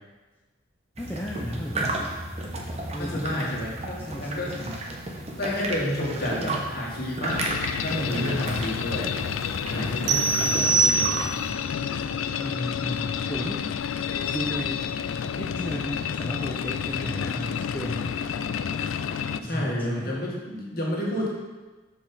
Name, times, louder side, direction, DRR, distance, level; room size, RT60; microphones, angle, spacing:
voice 1, 1.0-2.2 2.9-3.4 3.8-4.8 7.8-8.6 9.7-10.8 12.3-13.7 14.2-14.9 15.4-18.2 19.4-20.2, equal, 10° left, -3 dB, 0.6 m, -34 dB
sound 1, 1.0-11.5, right 2 dB, 35° right, 0.9 m, -33 dB
voice 2, 2.8-4.8 5.3-7.4 7.8-9.1 9.7-11.2 19.3-21.3, left 1 dB, 50° left, -4 dB, 1.8 m, -31 dB
sound 2, 7.3-19.4, left 7 dB, 90° left, 0.4 m, -30 dB
sound 3, 10.1-11.6, right 4 dB, 55° right, 0.5 m, -23 dB
6.6 x 5.0 x 5.5 m, 1.2 s
head